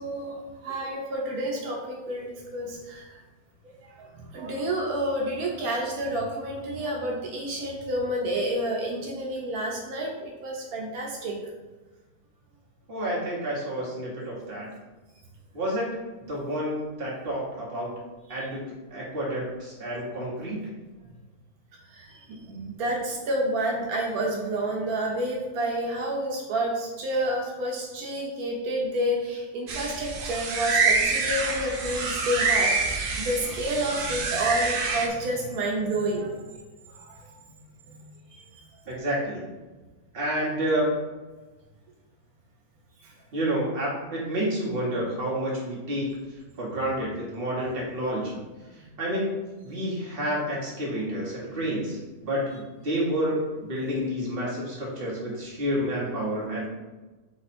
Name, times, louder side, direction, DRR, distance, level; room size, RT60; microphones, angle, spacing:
voice 1, 0.0-3.2 4.0-11.4 18.3-18.5 21.9-36.3 37.0-37.1 37.9-38.0 43.0-43.1 46.8-46.9, right 1 dB, 90° right, -1 dB, 1.2 m, -29 dB
voice 2, 12.9-14.7 15.5-15.9 16.3-17.9 18.3-18.6 18.9-20.7 38.9-39.4 40.1-40.9 43.3-46.1 46.6-48.4 49.0-49.3 49.6-56.7, equal, 40° right, -5 dB, 1.4 m, -29 dB
sound 1, 29.7-35.1, right 4 dB, 65° right, 0.5 m, -26 dB
4.3 x 2.6 x 4.2 m, 1.2 s
omnidirectional pair, 1.5 m